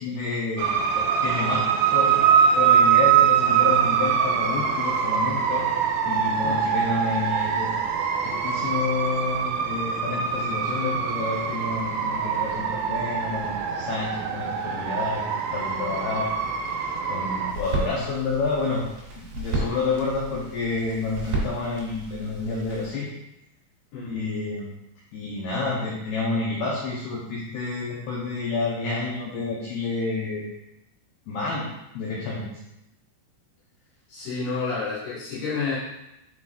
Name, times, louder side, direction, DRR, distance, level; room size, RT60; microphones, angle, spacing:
voice 1, 0.0-1.6 1.9-2.2 2.5-7.7 8.2-16.3 16.7-18.8 19.2-23.1 24.0-24.7 25.1-30.4 31.3-31.7 31.9-32.5, left 3 dB, 80° left, -4 dB, 2.2 m, -29 dB
sound 1, 0.6-17.5, right 7 dB, 80° right, 3.1 m, -23 dB
sound 2, 17.5-22.9, right 2 dB, 65° right, 3.9 m, -33 dB
voice 2, 34.1-35.8, left 4 dB, 65° left, -10 dB, 3.8 m, -29 dB
7.4 x 6.1 x 2.4 m, 0.90 s
omnidirectional pair, 5.8 m